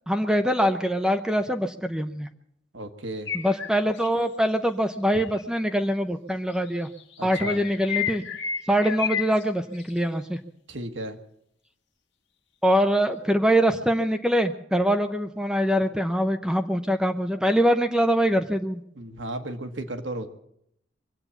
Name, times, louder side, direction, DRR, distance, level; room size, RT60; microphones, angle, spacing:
voice 1, 0.1-2.3 3.3-6.9 7.2-8.2 8.7-10.4 12.6-18.8, equal, 5° right, 7 dB, 0.6 m, -23 dB
voice 2, 2.7-3.3 5.1-5.2 7.2-7.6 10.7-11.2 18.9-20.3, right 1 dB, 80° right, 6 dB, 1.4 m, -34 dB
sound 1, 3.3-4.1 5.2-5.4 6.7-9.4 9.7-10.0, left 7 dB, 70° left, 1.5 m, -31 dB
23.5 x 8.6 x 7.0 m, 0.74 s
head